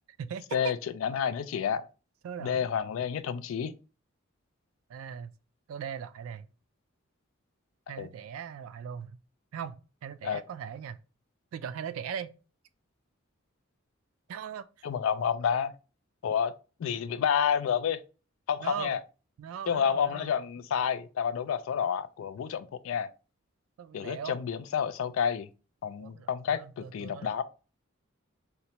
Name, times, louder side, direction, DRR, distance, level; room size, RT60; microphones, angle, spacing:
voice 1, 0.2-0.7 2.2-2.7 4.9-5.3 5.7-6.5 7.9-9.2 9.5-11.0 11.5-12.3 14.3-14.9 18.6-19.0 19.4-20.3 23.8-24.4 26.0-27.4, right 8 dB, 85° right, 0.3 m, -39 dB
voice 2, 1.0-1.8 2.4-3.7 8.0-8.1 10.2-10.4 14.8-15.7 16.2-16.5 16.8-18.0 18.5-19.0 19.7-23.1 23.9-25.5 25.8-27.4, left 7 dB, 75° left, 0.3 m, -29 dB
2.8 x 2.1 x 4.0 m
head